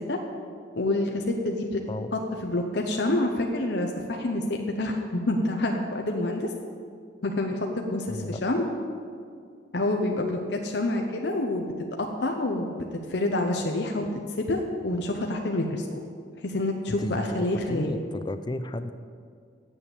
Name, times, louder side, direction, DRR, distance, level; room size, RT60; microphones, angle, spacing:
voice 1, 0.7-1.8 2.4-6.5 7.2-8.7 9.7-11.7 12.2-12.8 13.1-14.1 14.4-15.9 16.4-18.0, left 2 dB, 60° left, 2 dB, 0.8 m, -27 dB
voice 2, 8.1-8.4 16.9-18.9, left 1 dB, 25° left, 10 dB, 0.4 m, -33 dB
8.5 x 7.1 x 8.4 m, 2.2 s
head